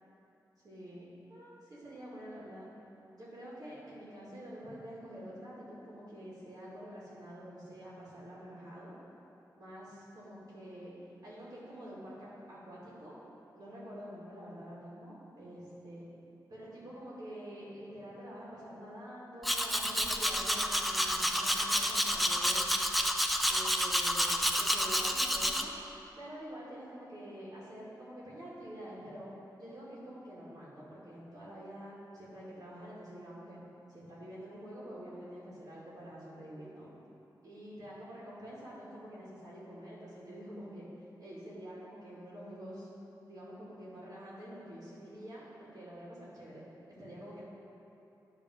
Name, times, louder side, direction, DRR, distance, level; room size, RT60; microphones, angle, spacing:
voice 1, 0.6-2.7 3.2-8.9 9.6-10.9 11.2-13.2 13.5-16.0 16.5-22.7 23.5-25.7 26.2-33.6 33.9-36.9 37.4-40.9 41.2-42.9 43.3-47.4, equal, 60° right, -8 dB, 1.9 m, -47 dB
Domestic sounds home sounds, 19.4-25.6, equal, ahead, 0.4 m, -29 dB
10.0 x 3.4 x 6.2 m, 2.9 s
wide cardioid pair, 110°, 7 cm